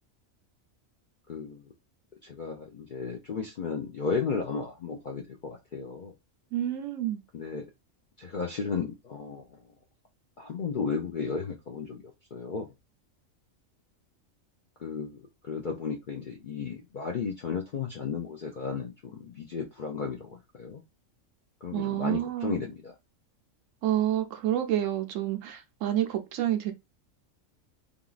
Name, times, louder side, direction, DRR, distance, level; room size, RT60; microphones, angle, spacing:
voice 1, 1.3-1.6 2.2-6.1 7.3-7.7 8.2-9.5 10.4-12.0 12.3-12.7 14.8-20.8 21.6-22.9, left 5 dB, 65° left, 0.4 m, -34 dB
voice 2, 6.5-7.2 21.7-22.5 23.8-26.7, right 12 dB, 75° right, 0.9 m, -28 dB
3.5 x 2.4 x 2.4 m
omnidirectional pair, 1.4 m